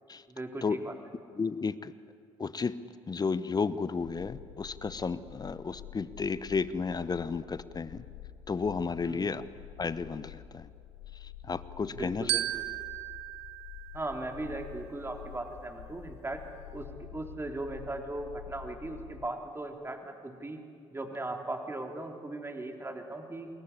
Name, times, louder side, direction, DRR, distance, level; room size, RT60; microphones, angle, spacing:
voice 1, 0.3-0.9 9.0-9.3 11.9-12.6 13.9-16.4 16.7-20.6 20.9-23.5, right 2 dB, 15° right, 3 dB, 3.4 m, -38 dB
voice 2, 1.4-1.9 2.4-2.8 3.1-8.0 8.5-9.4 9.8-10.7 11.2-12.3, left 5 dB, 25° left, 15 dB, 1.0 m, -32 dB
sound 1, 4.0-19.3, left 11 dB, 65° left, 1.4 m, -48 dB
Glockenspiel, 12.3-14.8, right 15 dB, 75° right, 1.1 m, -36 dB
27.5 x 21.5 x 9.9 m, 2.4 s
figure-of-eight pair, 50°, 15 cm